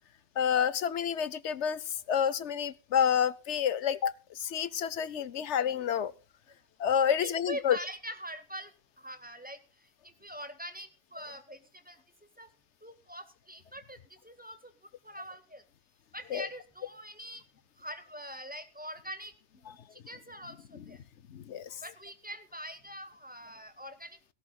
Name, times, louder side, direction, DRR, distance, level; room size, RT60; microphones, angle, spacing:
voice 1, 0.4-6.1 6.8-7.8 16.3-16.5 20.7-20.8 21.3-21.8, left 8 dB, 75° left, 18 dB, 1.1 m, -29 dB
voice 2, 7.2-8.7 9.0-9.6 10.0-12.0 12.4-12.5 12.8-14.0 14.2-14.7 15.0-15.6 16.1-17.4 17.8-21.0 21.8-24.2, equal, 5° right, 9 dB, 1.8 m, -43 dB
17.5 x 17.0 x 2.3 m, 0.31 s
omnidirectional pair, 1.2 m